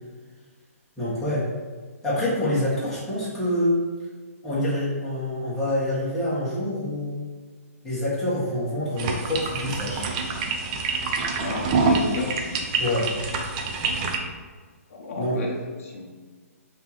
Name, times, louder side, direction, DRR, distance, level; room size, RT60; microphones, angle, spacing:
voice 1, 1.0-1.4 2.0-3.8 4.4-7.2 7.8-10.1 12.8-13.1 15.2-15.4, left 1 dB, 5° left, -11 dB, 1.4 m, -26 dB
sound 1, 9.0-14.2, right 4 dB, 30° right, 0.5 m, -26 dB
voice 2, 11.4-12.3 14.9-16.1, left 3 dB, 60° left, -1 dB, 0.7 m, -31 dB
3.6 x 2.9 x 4.0 m, 1.5 s
hypercardioid pair, 155°, 8 cm